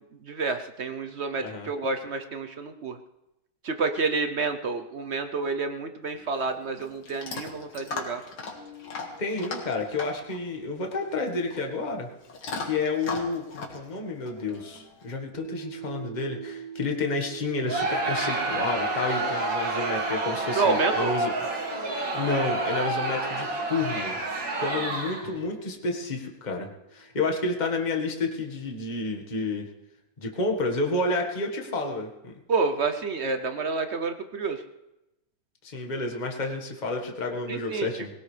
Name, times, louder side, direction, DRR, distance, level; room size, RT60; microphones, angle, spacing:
voice 1, 0.2-3.0 3.6-8.2 20.5-21.1 32.5-34.6 37.5-37.9, right 4 dB, 55° right, 8 dB, 0.7 m, -29 dB
Chewing mastication / Dog, 6.0-15.2, left 4 dB, 85° left, 2.7 m, -39 dB
voice 2, 9.2-12.1 12.6-21.3 21.7-21.8 22.1-24.1 24.6-29.7 30.2-32.3 35.6-38.1, left 3 dB, 25° left, 1 dB, 1.6 m, -30 dB
sound 1, 15.3-27.4, right 8 dB, 35° right, 7.2 m, -45 dB
Crowd, 17.7-25.4, right 2 dB, 80° right, 3.3 m, -29 dB
20.5 x 18.0 x 3.3 m, 0.92 s
omnidirectional pair, 2.0 m